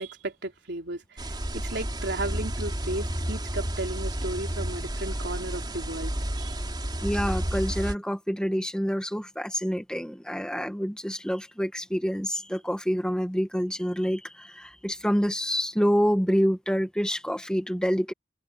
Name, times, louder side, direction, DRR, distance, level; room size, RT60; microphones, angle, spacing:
voice 1, 0.0-6.6, right 2 dB, 65° right, 4.1 m, -35 dB
sound 1, 1.2-7.9, right 1 dB, 25° right, 3.8 m, -31 dB
voice 2, 7.0-18.1, equal, 5° left, 2.0 m, -27 dB
open air
head